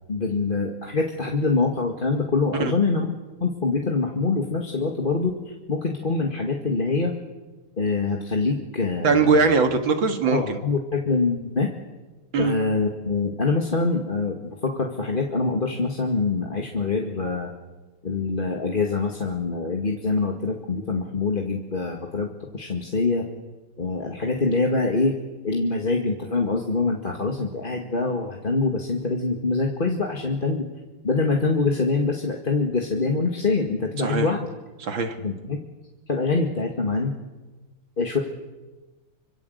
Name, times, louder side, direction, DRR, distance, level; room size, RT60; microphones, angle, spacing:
voice 1, 0.1-3.1 3.4-7.1 7.8-9.5 10.3-11.7 12.4-17.5 18.0-23.3 23.8-25.2 25.4-30.7 31.0-34.5 35.2-35.6 36.1-37.1 38.0-38.2, left 3 dB, 25° left, 1 dB, 2.1 m, -24 dB
voice 2, 9.0-10.6 12.3-12.5 34.0-34.3 34.8-35.2, right 4 dB, 65° right, 7 dB, 2.7 m, -21 dB
26.5 x 25.0 x 8.1 m, 1.2 s
omnidirectional pair, 2.3 m